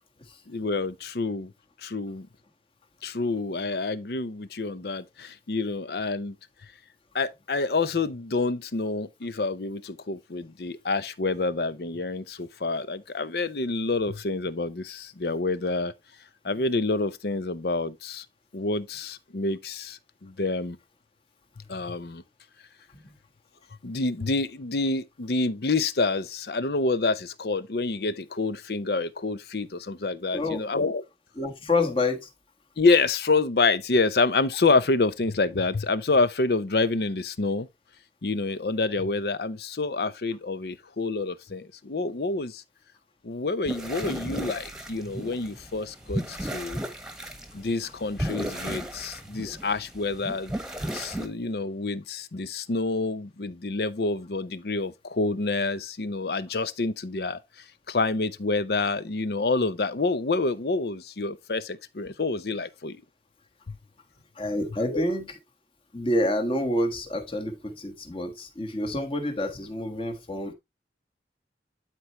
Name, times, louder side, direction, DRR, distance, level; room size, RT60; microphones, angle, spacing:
voice 1, 0.5-1.5 1.8-2.3 3.0-6.4 7.1-15.9 16.4-18.3 18.5-20.8 21.7-22.2 23.8-31.0 32.8-37.7 38.2-42.6 43.2-46.8 47.5-50.5 50.9-57.4 57.9-63.0 63.7-63.8 64.8-65.0, left 3 dB, 60° left, 0.6 m, -27 dB
voice 2, 30.3-30.7 31.4-32.3 64.3-65.3 65.9-70.5, left 1 dB, 30° left, 1.3 m, -28 dB
sound 1, 43.6-51.3, right 1 dB, 5° right, 1.2 m, -35 dB
11.5 x 4.5 x 3.0 m
head